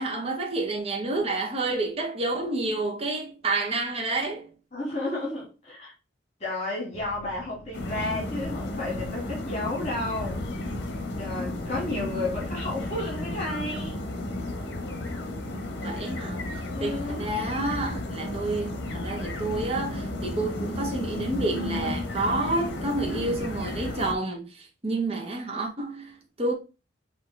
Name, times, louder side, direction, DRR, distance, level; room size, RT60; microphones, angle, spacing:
voice 1, 0.0-4.5 15.8-26.5, right 2 dB, 30° right, 0.8 m, -29 dB
voice 2, 4.7-5.9 6.4-10.7 11.2-14.0 16.7-17.3, left 2 dB, 35° left, 2.0 m, -32 dB
sound 1, 6.9-9.8, equal, 20° left, 1.6 m, -49 dB
sound 2, 7.7-24.1, left 2 dB, 60° left, 0.9 m, -33 dB
5.8 x 2.8 x 3.3 m
head